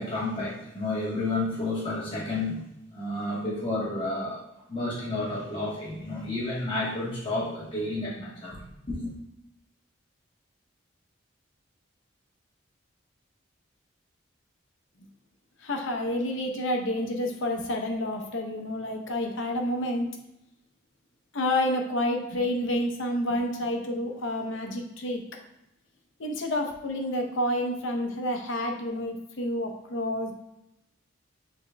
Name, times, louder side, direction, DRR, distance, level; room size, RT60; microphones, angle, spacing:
voice 1, 0.0-2.6 2.9-4.4 4.7-8.6 8.9-9.1, left 2 dB, 25° left, -7 dB, 1.1 m, -31 dB
voice 2, 15.6-20.1 21.3-25.2 26.2-30.3, left 1 dB, 75° left, 3 dB, 0.7 m, -29 dB
6.1 x 3.6 x 2.2 m, 0.87 s
head